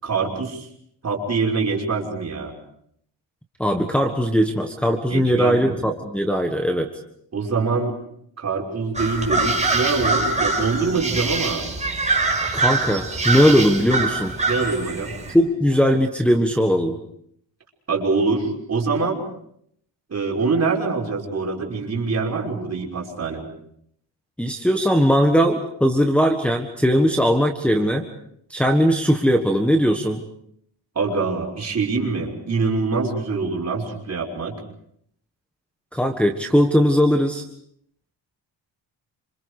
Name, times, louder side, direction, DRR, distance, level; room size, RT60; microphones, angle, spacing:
voice 1, 0.0-0.7 1.0-2.5 5.1-5.8 7.3-7.9 8.4-11.6 14.5-15.1 17.9-19.2 20.1-23.5 30.9-34.6, right 4 dB, 35° right, 0 dB, 6.0 m, -24 dB
voice 2, 3.6-6.9 12.5-14.3 15.3-17.0 24.4-28.1 28.5-30.2 35.9-37.4, equal, 5° left, 2 dB, 1.5 m, -19 dB
sound 1, 8.9-15.3, right 3 dB, 15° right, 4.9 m, -24 dB
29.0 x 27.0 x 4.9 m, 0.69 s
cardioid pair, 130°, 45 cm